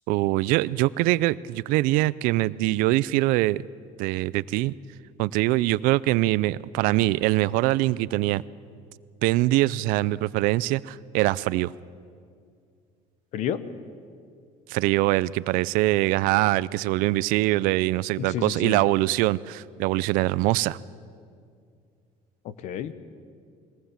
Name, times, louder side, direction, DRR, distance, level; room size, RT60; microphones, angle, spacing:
voice 1, 0.1-3.6 4.0-4.7 5.2-8.4 9.2-11.7 14.7-20.8, right 18 dB, 85° right, 19 dB, 0.5 m, -23 dB
voice 2, 18.2-18.8 22.4-22.9, left 9 dB, 55° left, 14 dB, 1.1 m, -30 dB
22.0 x 18.0 x 7.3 m, 2.3 s
cardioid pair, 150°, 14 cm